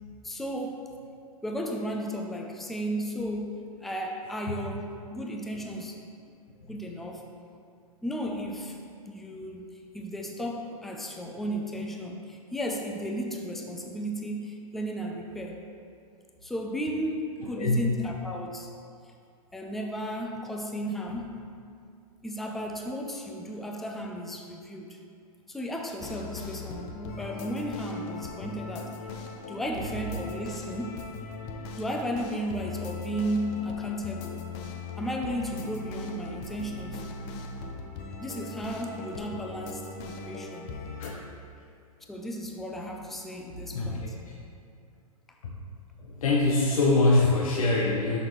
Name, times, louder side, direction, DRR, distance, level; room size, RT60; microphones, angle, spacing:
voice 1, 0.2-0.9 1.4-6.0 6.7-7.3 8.0-8.8 9.1-9.6 9.9-15.7 16.4-18.7 19.5-21.5 22.2-25.0 25.5-29.0 29.5-31.0 31.8-34.5 35.0-37.0 38.2-40.8 42.1-44.2, equal, ahead, 1 dB, 0.3 m, -34 dB
sound 1, 26.0-41.1, left 3 dB, 35° left, 0.6 m, -39 dB
voice 2, 46.0-48.2, left 2 dB, 65° left, -3 dB, 0.9 m, -23 dB
6.1 x 5.9 x 3.0 m, 2.4 s
hypercardioid pair, 120°, 19 cm